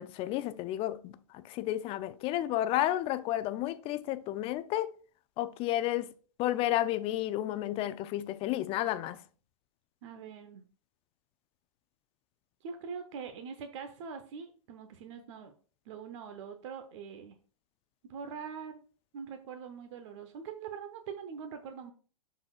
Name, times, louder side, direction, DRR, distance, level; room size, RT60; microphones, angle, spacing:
voice 1, 0.0-4.9 5.4-6.1 6.4-9.2, left 14 dB, 30° left, 0.5 m, -32 dB
voice 2, 10.0-10.7 12.6-15.5 15.9-17.4 18.0-18.8 19.1-21.9, right 6 dB, 55° right, 0.8 m, -43 dB
11.5 x 4.1 x 2.4 m
hypercardioid pair, 115°, 18 cm